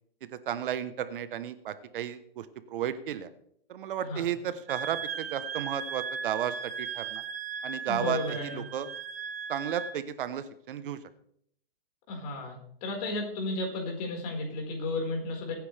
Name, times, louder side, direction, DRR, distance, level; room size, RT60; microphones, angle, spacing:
voice 1, 0.5-2.4 2.7-3.3 3.7-7.2 7.6-8.9 9.5-11.0, right 9 dB, 60° right, 12 dB, 1.1 m, -33 dB
Wind instrument woodwind instrument, 4.7-10.0, right 6 dB, 80° right, 1.8 m, -37 dB
voice 2, 7.9-8.6 12.1-15.5, left 2 dB, 40° left, 1 dB, 4.8 m, -33 dB
22.5 x 9.5 x 3.4 m, 0.69 s
hypercardioid pair, 150°, 30 cm